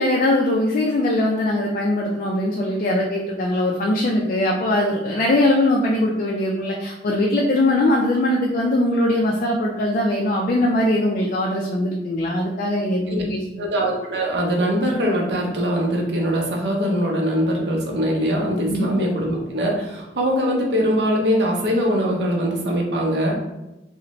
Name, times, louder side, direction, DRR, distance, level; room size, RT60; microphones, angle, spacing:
voice 1, 0.0-13.4 18.6-18.9, left 1 dB, 50° left, -1 dB, 0.3 m, -21 dB
voice 2, 13.6-23.4, equal, 70° right, -1 dB, 0.6 m, -22 dB
2.6 x 2.1 x 2.9 m, 0.97 s
head